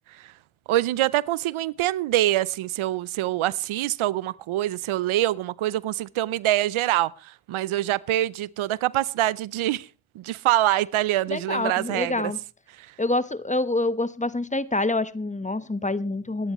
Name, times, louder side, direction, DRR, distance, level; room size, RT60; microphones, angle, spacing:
voice 1, 0.7-9.9 10.1-12.3 12.8-12.9, right 14 dB, 80° right, 0.6 m, -25 dB
voice 2, 11.3-12.4 13.0-16.5, left 2 dB, 15° left, 1.0 m, -26 dB
24.5 x 10.0 x 3.0 m
supercardioid pair, 50°, 48 cm